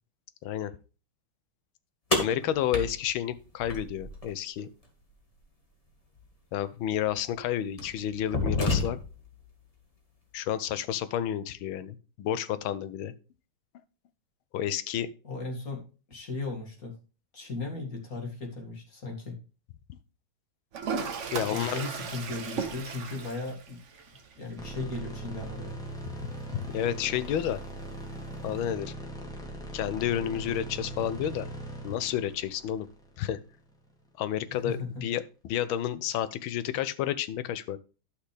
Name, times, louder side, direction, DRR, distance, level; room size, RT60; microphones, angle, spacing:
voice 1, 2.1-4.7 6.5-9.0 10.3-13.1 14.5-15.1 21.3-21.8 26.2-27.6 28.4-28.9 29.7-31.5 31.8-32.9 33.2-33.4 34.2-37.8, left 10 dB, 85° left, 14 dB, 1.5 m, -30 dB
sound 1, 2.1-4.3 6.2-6.3 7.1-7.3 7.8-9.3, left 2 dB, 20° left, 1.1 m, -29 dB
voice 2, 15.2-15.8 16.1-16.9 17.3-19.4 21.5-23.8 24.4-25.8 34.6-35.1, left 3 dB, 45° left, 1 dB, 2.4 m, -36 dB
Toilet flush, 20.7-28.7, right 6 dB, 45° right, 1.0 m, -39 dB
sound 2, 24.6-33.8, right 1 dB, ahead, 1.7 m, -40 dB
11.5 x 5.8 x 3.3 m, 0.34 s
omnidirectional pair, 2.2 m